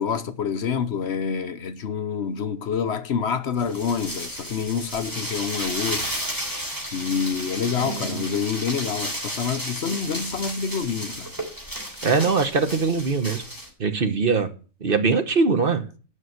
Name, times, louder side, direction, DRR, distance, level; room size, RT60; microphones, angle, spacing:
voice 1, 0.0-6.1 6.9-11.3, left 6 dB, 60° left, 1.0 m, -27 dB
sound 1, 3.6-13.7, equal, 15° right, 3.4 m, -33 dB
voice 2, 7.8-8.3 12.0-13.4 13.8-14.5 14.8-15.8, right 4 dB, 45° right, 1.2 m, -22 dB
9.7 x 6.1 x 7.8 m
omnidirectional pair, 1.3 m